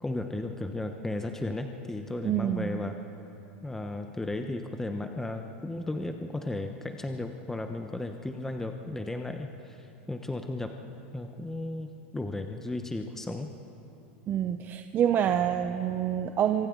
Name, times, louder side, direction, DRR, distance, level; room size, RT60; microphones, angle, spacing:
voice 1, 0.0-3.0 3.6-9.8 10.1-10.8 11.1-13.5, left 2 dB, 5° left, 5 dB, 0.9 m, -35 dB
voice 2, 2.2-2.8 14.3-16.7, right 9 dB, 35° right, 7 dB, 0.8 m, -27 dB
27.0 x 24.5 x 3.9 m, 2.8 s
supercardioid pair, 120°, 6 cm